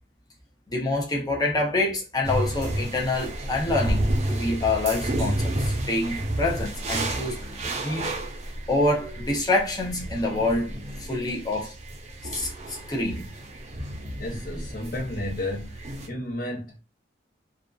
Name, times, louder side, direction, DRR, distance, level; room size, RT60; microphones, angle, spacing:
voice 1, 0.7-8.1 8.7-10.7 11.1-11.7 12.3-13.3, left 2 dB, 20° left, 0.7 m, -26 dB
sound 1, 2.2-16.1, right 1 dB, 40° right, 0.5 m, -31 dB
voice 2, 14.2-15.8 16.1-16.8, left 1 dB, 50° left, 0.9 m, -32 dB
2.6 x 2.3 x 2.4 m
head